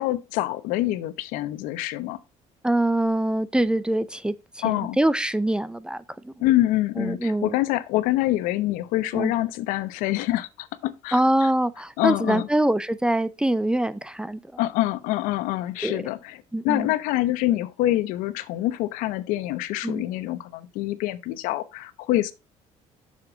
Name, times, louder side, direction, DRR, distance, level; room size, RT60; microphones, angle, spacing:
voice 1, 0.0-2.2 4.6-5.0 6.4-11.5 12.0-12.5 14.6-22.3, left 15 dB, 85° left, 0.8 m, -26 dB
voice 2, 2.6-6.3 7.0-7.6 9.1-9.3 11.1-14.4 15.8-16.0 16.5-16.9 19.8-20.0, right 1 dB, 5° right, 0.5 m, -24 dB
6.8 x 6.7 x 3.9 m
cardioid pair, 105°, 13 cm